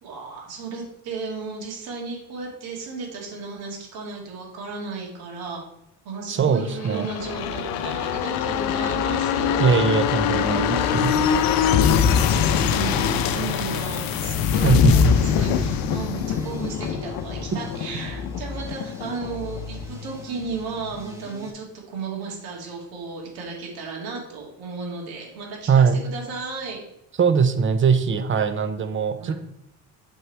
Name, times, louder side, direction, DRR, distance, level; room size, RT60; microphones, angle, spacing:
voice 1, 0.0-5.6 6.0-9.7 10.2-11.0 11.7-26.8 29.2-29.3, right 4 dB, 75° right, -1 dB, 2.5 m, -34 dB
voice 2, 6.3-7.1 9.6-11.1 14.6-15.2 25.7-26.0 27.2-29.3, right 6 dB, 35° right, 11 dB, 0.8 m, -21 dB
sound 1, 6.7-20.2 20.5-20.6, left 8 dB, 65° left, 0.7 m, -23 dB
sound 2, 12.3-21.5, left 1 dB, 10° right, 1.6 m, -40 dB
8.0 x 4.5 x 4.6 m, 0.81 s
supercardioid pair, 85°, 37 cm